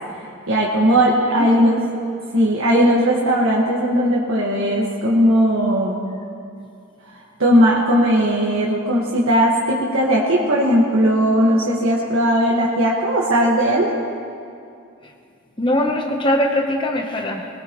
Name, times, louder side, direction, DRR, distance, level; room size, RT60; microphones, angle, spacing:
voice 1, 0.5-1.8 2.3-6.0 7.4-13.9, equal, 85° right, -5 dB, 1.6 m, -17 dB
voice 2, 15.6-17.5, left 1 dB, 25° left, 2 dB, 0.9 m, -21 dB
21.0 x 18.0 x 3.1 m, 2.5 s
head